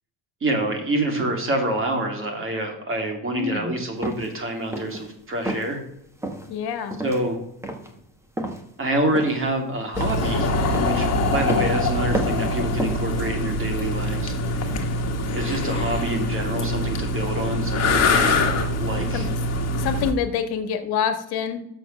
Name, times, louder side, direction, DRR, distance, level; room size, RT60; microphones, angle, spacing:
voice 1, 0.4-5.8 7.0-7.4 8.8-10.5 10.8-14.8 15.3-18.5 18.8-19.3, right 1 dB, 30° right, 3 dB, 2.5 m, -27 dB
voice 2, 3.3-3.8 6.5-7.0 19.1-19.3 19.8-21.7, left 7 dB, 60° left, 8 dB, 1.6 m, -26 dB
sound 1, 4.0-4.3 4.7-5.1 5.5-5.7 6.2-6.5 6.9-7.2 7.6-7.9 8.4-8.6 9.2-9.5 10.0-10.3 10.7-11.0 11.5-11.8 12.1-12.5 12.8-13.1, right 1 dB, 5° right, 1.2 m, -30 dB
sound 2, 9.9-20.1, left 2 dB, 35° left, 1.8 m, -24 dB
7.1 x 6.6 x 6.3 m, 0.80 s
cardioid pair, 130°, 43 cm